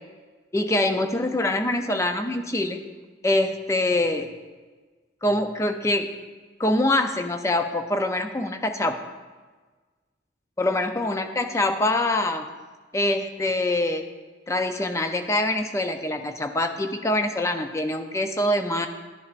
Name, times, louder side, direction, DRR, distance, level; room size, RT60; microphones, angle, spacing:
voice 1, 0.5-2.8 3.2-4.3 5.2-6.1 6.6-9.0 10.6-12.5 12.9-14.0 14.5-18.9, left 1 dB, 15° left, 7 dB, 0.4 m, -24 dB
10.5 x 9.8 x 2.5 m, 1.4 s
head